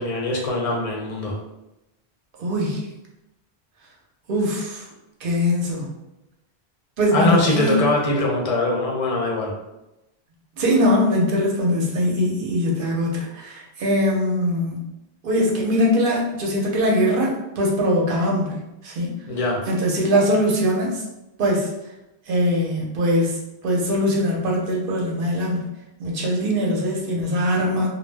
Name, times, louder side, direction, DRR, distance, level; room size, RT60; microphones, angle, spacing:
voice 1, 0.0-1.3 7.1-9.5 19.3-19.6, left 2 dB, 45° left, -2 dB, 0.5 m, -22 dB
voice 2, 2.4-2.9 4.3-4.9 5.2-5.9 7.0-7.8 10.6-14.9 15.2-19.1 19.7-21.0 21.4-21.7 22.3-25.7 26.0-27.9, equal, 60° right, -2 dB, 0.8 m, -22 dB
2.2 x 2.0 x 3.3 m, 0.94 s
omnidirectional pair, 1.1 m